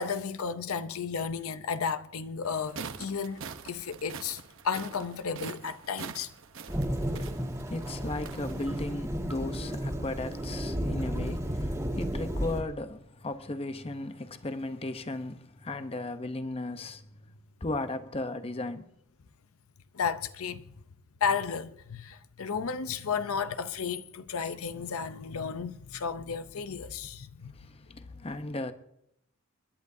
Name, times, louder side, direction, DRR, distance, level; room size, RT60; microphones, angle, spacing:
voice 1, 0.0-3.4 3.7-6.3 19.9-20.7 21.2-27.7, left 6 dB, 70° left, 0.6 m, -33 dB
sound 1, 2.4-8.9, right 5 dB, 60° right, 0.9 m, -44 dB
Thunderstorm / Rain, 6.7-12.6, equal, 15° right, 2.0 m, -33 dB
voice 2, 7.0-7.3 7.6-17.1 17.6-18.9 27.5-28.7, left 2 dB, 25° left, 0.7 m, -36 dB
29.5 x 10.5 x 2.7 m
head